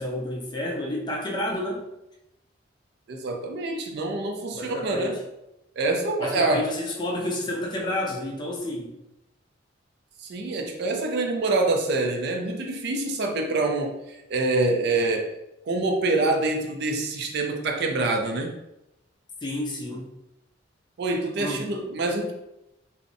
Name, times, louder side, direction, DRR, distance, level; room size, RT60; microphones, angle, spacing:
voice 1, 0.0-1.9 4.5-5.2 6.2-8.9 19.4-20.1 21.4-21.7, left 1 dB, 25° left, 0 dB, 0.4 m, -30 dB
voice 2, 3.1-5.2 5.8-6.6 10.2-15.3 15.7-18.5 21.0-22.3, right 2 dB, 60° right, 3 dB, 0.4 m, -26 dB
2.5 x 2.0 x 2.5 m, 0.89 s
head